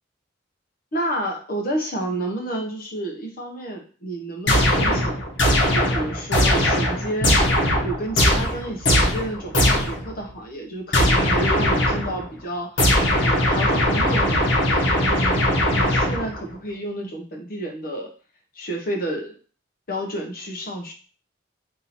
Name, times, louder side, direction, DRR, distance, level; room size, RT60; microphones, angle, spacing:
voice 1, 0.9-5.2 5.7-7.5 7.8-12.9 13.2-18.1 18.5-19.4 19.9-20.9, right 1 dB, 45° left, 1 dB, 0.9 m, -30 dB
sound 1, 4.5-10.1 10.9-12.2 12.8-16.5, left 1 dB, 70° left, 1.2 m, -20 dB
3.7 x 2.8 x 4.2 m, 0.38 s
head